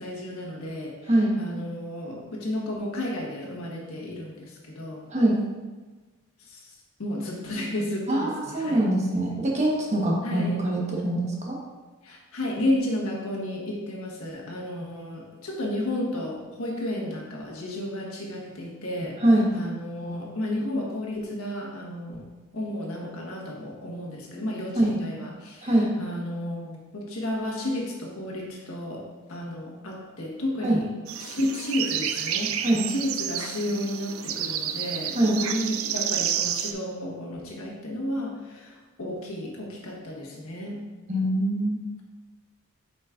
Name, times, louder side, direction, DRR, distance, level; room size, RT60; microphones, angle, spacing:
voice 1, 0.0-1.1 1.4-5.1 6.4-6.7 7.0-8.9 10.2-10.6 12.0-19.2 19.5-22.3 22.5-30.9 31.2-40.8, left 1 dB, 90° left, -2 dB, 1.4 m, -32 dB
voice 2, 5.1-5.4 8.1-11.6 19.2-19.5 24.7-24.9 25.6-25.9 30.6-30.8 32.6-32.9 35.1-35.4 41.1-41.8, right 1 dB, 35° right, -3 dB, 1.2 m, -23 dB
sound 1, 31.1-36.7, right 9 dB, 75° right, 0.4 m, -30 dB
8.0 x 5.2 x 2.5 m, 1.3 s
head